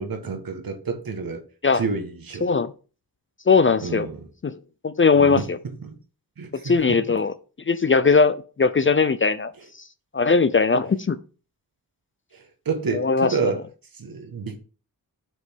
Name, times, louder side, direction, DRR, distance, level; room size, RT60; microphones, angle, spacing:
voice 1, 0.0-1.4 1.7-2.5 3.8-4.3 5.2-5.5 5.8-5.9 6.4-7.0 12.3-13.6 13.9-14.6, right 4 dB, 65° right, 1.4 m, -29 dB
voice 2, 2.4-2.7 3.5-4.1 4.4-4.5 4.8-5.6 6.6-7.3 7.7-9.5 10.1-11.2 12.9-13.5, left 4 dB, 35° left, 0.4 m, -19 dB
7.8 x 5.1 x 3.6 m
wide cardioid pair, 130°, 38 cm